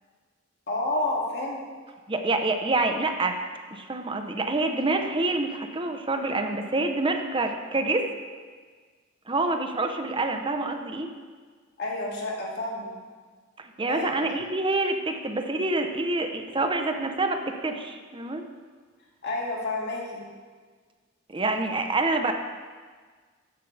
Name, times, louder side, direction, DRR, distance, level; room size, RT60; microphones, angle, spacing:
voice 1, 0.7-1.6 11.8-12.9 13.9-14.1 19.2-20.2, left 2 dB, 55° left, -3 dB, 2.6 m, -29 dB
voice 2, 2.1-3.4 3.7-8.1 9.3-11.1 13.6-18.4 21.3-22.3, right 2 dB, 25° right, 5 dB, 0.9 m, -27 dB
14.0 x 10.5 x 3.5 m, 1.5 s
head